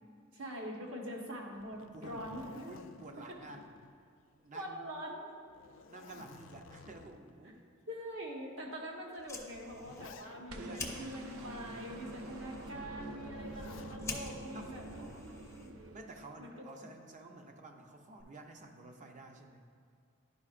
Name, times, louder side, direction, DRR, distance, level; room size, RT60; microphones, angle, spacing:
voice 1, 0.3-2.7 3.2-3.3 4.5-5.3 7.9-16.0 16.4-16.7, equal, 75° right, -1 dB, 1.1 m, -44 dB
Zipper (clothing), 1.5-4.5 4.8-4.9 5.5-7.3 8.1-8.2 9.2-10.7 13.2-14.1 15.4-15.9, left 5 dB, 65° left, 0.3 m, -54 dB
voice 2, 1.9-3.7 4.3-4.9 5.9-7.7 10.5-11.0 11.4-11.7 14.5-15.4 15.9-19.6, right 2 dB, 35° right, 3 dB, 0.5 m, -51 dB
Fire, 9.1-16.0, left 3 dB, 15° left, 0.6 m, -48 dB
sound 1, 10.5-16.7 18.2-18.3, right 1 dB, 90° right, 0.6 m, -47 dB
11.0 x 4.9 x 2.4 m, 2.2 s
head